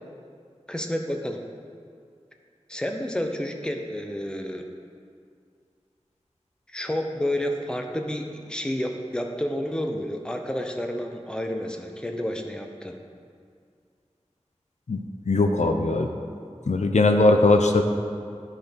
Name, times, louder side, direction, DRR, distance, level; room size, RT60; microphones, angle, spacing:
voice 1, 0.7-1.4 2.7-4.6 6.7-13.0, equal, 5° left, 3 dB, 0.7 m, -30 dB
voice 2, 15.3-16.1 16.7-17.8, left 2 dB, 90° left, 5 dB, 0.5 m, -19 dB
11.5 x 4.0 x 5.2 m, 2.3 s
wide cardioid pair, 50°, 12 cm